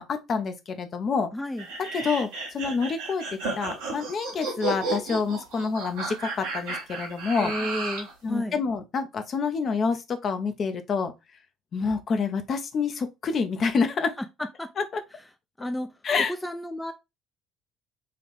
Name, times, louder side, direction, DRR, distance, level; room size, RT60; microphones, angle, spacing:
voice 1, 0.0-1.3 1.9-3.2 3.6-7.5 8.2-11.1 11.7-14.2 14.8-15.0 16.0-16.3, left 5 dB, 45° left, 0.7 m, -27 dB
voice 2, 1.3-1.6 7.4-8.6 14.4-14.7 15.6-16.9, left 1 dB, 10° left, 0.5 m, -32 dB
sound 1, 1.6-8.1, right 3 dB, 80° right, 1.4 m, -33 dB
4.2 x 2.5 x 3.3 m
hypercardioid pair, 60°, 0 cm